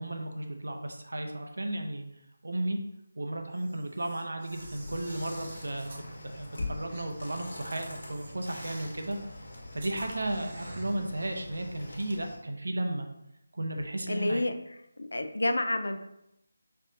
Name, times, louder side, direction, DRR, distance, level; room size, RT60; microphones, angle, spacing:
voice 1, 0.0-2.0 2.4-2.8 3.2-9.2 9.7-13.1 13.5-14.4, right 1 dB, 75° right, 4 dB, 0.7 m, -34 dB
Camera, 3.5-6.1 6.9-7.1 7.7-9.0 9.7-11.0, right 2 dB, 40° right, 0.8 m, -51 dB
sound 1, 4.5-12.4, left 1 dB, 65° left, 1.3 m, -43 dB
voice 2, 14.1-14.6 15.0-16.0, left 1 dB, 80° left, 7 dB, 0.4 m, -29 dB
5.4 x 2.7 x 2.6 m, 0.83 s
figure-of-eight pair, 160°, 0 cm